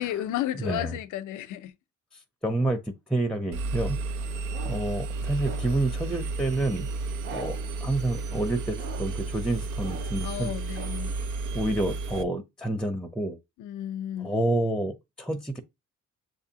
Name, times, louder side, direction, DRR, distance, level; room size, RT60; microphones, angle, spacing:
voice 1, 0.0-1.7 10.2-11.1 13.6-14.3, left 12 dB, 85° left, 0.6 m, -32 dB
voice 2, 0.6-1.0 2.4-4.0 4.7-6.9 7.3-10.5 11.5-13.4 14.2-15.6, right 2 dB, ahead, 0.6 m, -29 dB
Engine, 3.5-12.2, right 3 dB, 80° right, 0.6 m, -32 dB
sound 1, 4.5-5.0 5.4-5.9 7.2-7.8 8.7-9.3 9.8-10.3 10.7-11.1, right 3 dB, 40° right, 0.8 m, -42 dB
6.5 x 2.6 x 2.8 m
cardioid pair, 90°, 30 cm